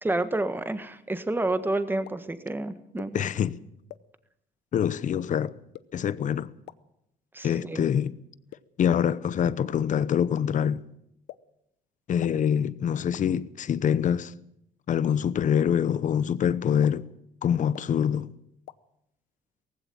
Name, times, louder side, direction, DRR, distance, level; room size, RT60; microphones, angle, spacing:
voice 1, 0.0-3.2 7.3-7.8, right 2 dB, 10° right, 1.5 m, -29 dB
sound 1, 2.1-2.2 3.0-3.1 3.9-4.0 4.8-4.9 5.7-5.8 6.7-6.8 7.6-7.7 8.5-8.6 9.4-9.5 10.4-10.5 11.3-11.4 12.2-12.3 13.1-13.2 14.0-14.1 15.0-15.1 15.9-16.0 16.8-16.9 17.7-17.8 18.7-18.8, left 16 dB, 85° left, 0.9 m, -41 dB
voice 2, 3.1-3.6 4.7-5.6 5.9-6.5 7.4-8.1 8.8-10.8 12.1-14.3 14.9-17.1 17.4-18.3, left 8 dB, 50° left, 0.9 m, -25 dB
18.5 x 15.5 x 9.0 m
cardioid pair, 110°, 17 cm